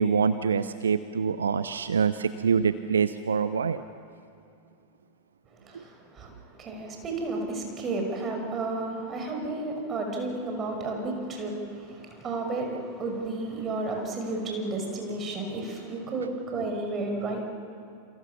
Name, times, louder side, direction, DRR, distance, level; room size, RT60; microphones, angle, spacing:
voice 1, 0.0-3.8 5.7-5.8, right 6 dB, 70° right, 13 dB, 0.7 m, -25 dB
voice 2, 5.6-6.3 6.6-17.4, right 2 dB, 25° right, 2 dB, 6.1 m, -32 dB
28.5 x 28.0 x 7.2 m, 2.6 s
figure-of-eight pair, 90°, 0 cm